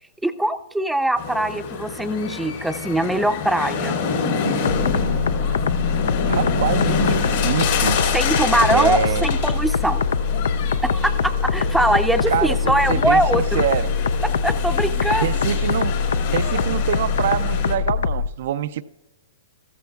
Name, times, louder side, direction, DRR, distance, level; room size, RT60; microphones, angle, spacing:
voice 1, 0.2-4.0 8.1-10.0 10.8-13.6 14.4-15.3, right 1 dB, ahead, 0.5 m, -22 dB
sound 1, 1.2-17.8, left 5 dB, 65° left, 2.6 m, -27 dB
sound 2, 4.6-18.3, left 5 dB, 80° left, 0.4 m, -23 dB
voice 2, 6.3-8.0 8.7-9.3 12.3-14.0 15.2-16.0 16.3-18.8, right 10 dB, 65° right, 0.4 m, -25 dB
14.0 x 13.5 x 2.3 m
hypercardioid pair, 130°, 0 cm